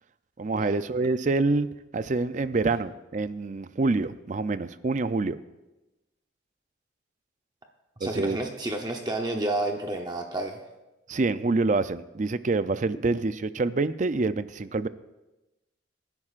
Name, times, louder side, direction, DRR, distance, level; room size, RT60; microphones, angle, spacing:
voice 1, 0.4-1.7 1.9-5.4 8.0-8.4 11.1-14.9, right 3 dB, 40° right, 13 dB, 0.4 m, -26 dB
voice 2, 8.0-10.6, right 2 dB, 20° right, 2 dB, 0.8 m, -30 dB
26.5 x 11.0 x 2.5 m, 1.0 s
head